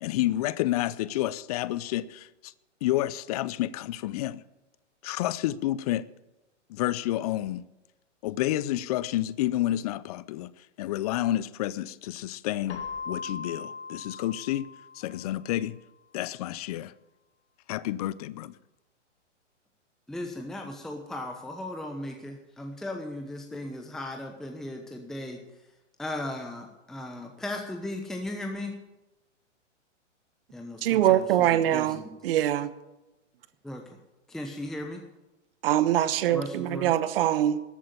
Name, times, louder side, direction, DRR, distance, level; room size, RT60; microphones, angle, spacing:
voice 1, 0.0-2.5 2.8-4.4 5.0-6.0 6.7-7.6 8.2-10.5 10.8-14.7 15.0-15.8 16.1-16.9 17.7-18.5, left 14 dB, 30° left, 0.5 m, -29 dB
Keyboard (musical), 12.7-15.4, left 5 dB, 65° left, 2.1 m, -39 dB
voice 2, 20.1-25.4 26.0-28.8 30.5-32.2 33.6-33.8 34.3-35.0 36.3-36.9, left 1 dB, ahead, 1.0 m, -37 dB
voice 3, 30.8-32.7 35.6-37.6, right 12 dB, 50° right, 1.1 m, -23 dB
13.5 x 8.5 x 8.6 m
hypercardioid pair, 130°, 37 cm